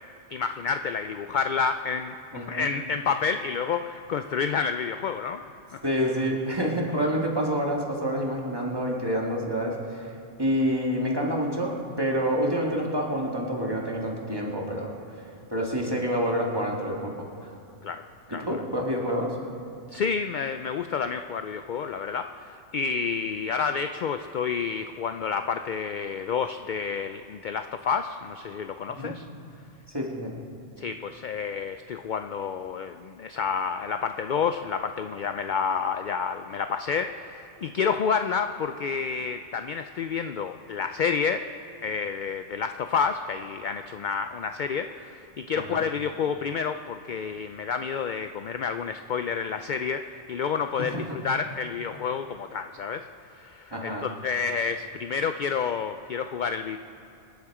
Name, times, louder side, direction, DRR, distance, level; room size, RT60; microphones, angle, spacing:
voice 1, 0.3-5.4 17.8-18.0 18.3-18.5 19.9-29.2 30.8-41.4 41.8-53.0 53.3-56.8, left 6 dB, 55° left, 8 dB, 0.6 m, -29 dB
voice 2, 2.3-2.7 5.8-10.1 10.4-14.9 15.5-17.5 18.3-19.3 28.9-29.1 29.9-30.3 45.7-45.8 50.8-51.0 53.7-54.1, equal, 20° right, -1 dB, 2.1 m, -28 dB
25.5 x 10.5 x 4.9 m, 2.8 s
omnidirectional pair, 1.2 m